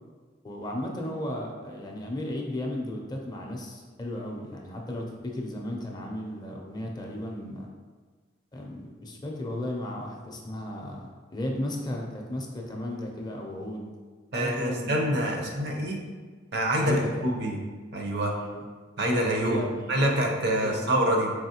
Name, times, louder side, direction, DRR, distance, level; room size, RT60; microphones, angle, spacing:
voice 1, 0.4-7.7 8.5-13.9 14.3-15.1 15.4-15.9 16.7-17.6 18.2-18.6 19.4-20.2 20.6-20.8, left 1 dB, 20° left, 0 dB, 0.5 m, -35 dB
voice 2, 14.3-16.0 16.5-17.6 17.9-18.3 19.0-19.6 19.9-21.3, right 1 dB, 60° right, 1 dB, 0.7 m, -26 dB
4.6 x 3.0 x 2.8 m, 1.5 s
head